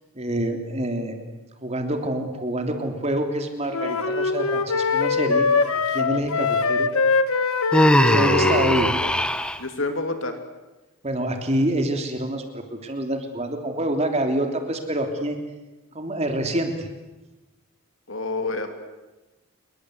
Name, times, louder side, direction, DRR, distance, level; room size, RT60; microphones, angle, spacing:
voice 1, 0.1-1.2 1.6-5.5 5.9-6.9 8.0-8.9 11.0-15.4 15.9-16.9, right 1 dB, 30° right, 5 dB, 3.2 m, -26 dB
sound 1, 3.7-8.9, left 4 dB, 80° left, 1.4 m, -23 dB
Human voice, 7.7-9.6, left 1 dB, 5° left, 1.0 m, -20 dB
voice 2, 8.1-8.6 9.0-9.1 9.6-10.4 18.1-18.7, left 2 dB, 60° left, 7 dB, 3.0 m, -28 dB
27.5 x 23.0 x 8.1 m, 1.1 s
head